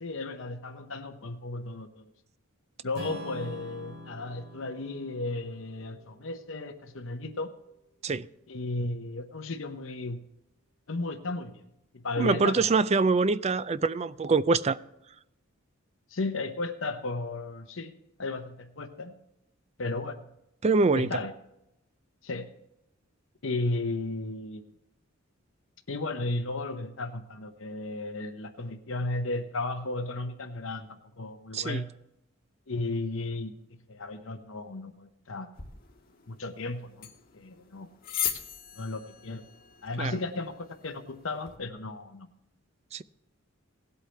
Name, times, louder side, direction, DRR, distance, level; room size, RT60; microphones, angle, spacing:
voice 1, 0.0-2.1 2.8-7.5 8.5-10.2 10.9-11.6 11.9-12.7 16.1-17.9 18.2-19.1 19.8-20.2 21.0-21.3 22.2-22.5 23.4-24.6 25.9-30.9 31.2-31.9 32.7-33.5 33.9-35.5 36.3-37.1 37.3-37.9 38.8-39.4 39.8-42.3, left 2 dB, 65° left, 7 dB, 0.8 m, -34 dB
Strum, 2.9-7.1, equal, 70° right, 3.2 m, -45 dB
voice 2, 12.2-14.8 20.6-21.1 31.5-31.8 40.0-40.2 42.9-43.0, right 4 dB, 30° right, 15 dB, 0.4 m, -24 dB
sound 1, 35.5-41.6, left 9 dB, 45° left, 1.6 m, -39 dB
18.5 x 8.2 x 3.3 m, 0.84 s
head